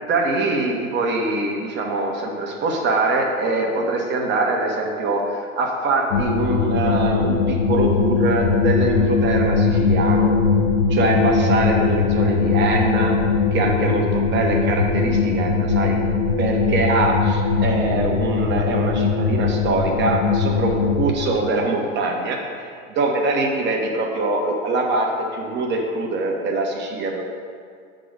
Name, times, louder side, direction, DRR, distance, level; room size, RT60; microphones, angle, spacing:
voice 1, 0.1-10.3 10.9-13.1 13.5-16.0 16.4-27.2, right 2 dB, 25° right, 1 dB, 1.2 m, -23 dB
sound 1, 6.1-21.1, left 4 dB, 80° left, 1.3 m, -20 dB
7.5 x 3.9 x 6.5 m, 2.1 s
hypercardioid pair, 115°, 40 cm